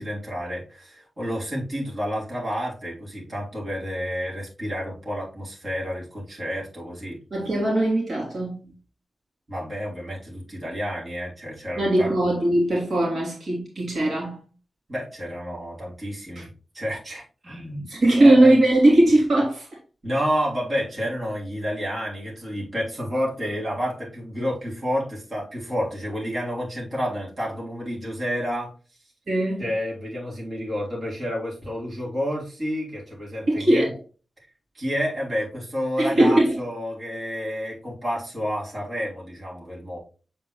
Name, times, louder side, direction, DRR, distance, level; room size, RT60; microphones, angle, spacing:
voice 1, 0.0-7.2 9.5-12.2 14.9-16.5 16.7-18.6 20.0-28.7 29.6-33.9 34.7-40.0, equal, 35° right, -5 dB, 3.3 m, -30 dB
voice 2, 7.3-8.6 11.8-14.4 16.3-16.4 17.9-19.7 29.3-29.6 33.5-33.9 36.0-36.6, right 1 dB, 60° right, -4 dB, 3.0 m, -19 dB
7.5 x 4.3 x 3.0 m, 0.36 s
wide cardioid pair, 100°, 0 cm